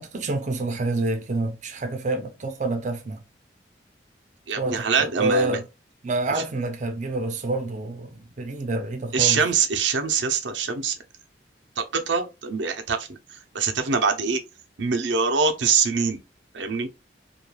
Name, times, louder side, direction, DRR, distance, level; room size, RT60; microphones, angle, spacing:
voice 1, 0.0-3.2 4.6-5.6 6.0-9.4, right 2 dB, 45° right, 0.5 m, -27 dB
voice 2, 4.5-5.6 6.4-6.5 9.1-11.0 11.8-14.4 14.8-16.2 16.5-16.9, right 5 dB, 90° right, 0.5 m, -24 dB
3.1 x 2.2 x 2.2 m
head